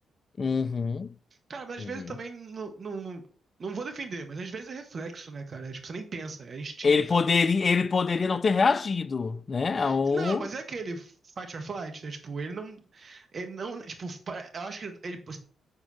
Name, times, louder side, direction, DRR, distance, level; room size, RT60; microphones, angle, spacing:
voice 1, 0.4-1.1 1.8-2.1 6.8-10.5, left 4 dB, 45° left, 0.4 m, -25 dB
voice 2, 1.5-3.2 3.6-7.2 9.8-15.4, right 4 dB, 50° right, 1.6 m, -38 dB
6.8 x 4.4 x 5.7 m
hypercardioid pair, 45°, 0 cm